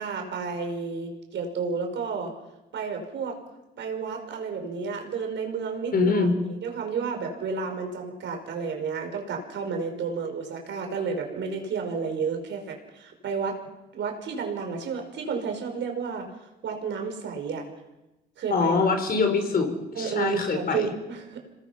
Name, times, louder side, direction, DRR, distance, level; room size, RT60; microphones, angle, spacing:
voice 1, 0.0-2.3 2.7-3.4 3.8-6.3 6.6-13.6 13.9-16.3 16.6-17.6 18.4-18.7 20.0-21.4, right 5 dB, 70° right, 4 dB, 5.3 m, -31 dB
voice 2, 5.9-6.3 18.5-20.9, left 4 dB, 50° left, 6 dB, 4.8 m, -24 dB
26.5 x 19.5 x 5.8 m, 0.99 s
cardioid pair, 90°, 20 cm